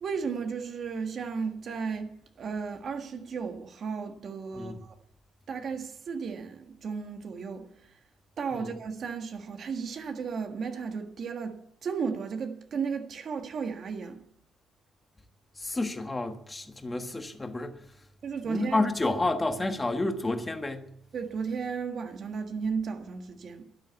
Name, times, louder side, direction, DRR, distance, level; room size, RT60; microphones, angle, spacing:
voice 1, 0.0-4.9 5.5-8.0 8.4-14.2 18.2-18.9 21.1-23.6, right 5 dB, 50° right, 1.6 m, -34 dB
voice 2, 15.6-17.8 18.4-20.8, left 2 dB, 15° left, 1.5 m, -30 dB
12.5 x 11.5 x 8.3 m
cardioid pair, 130°, 0 cm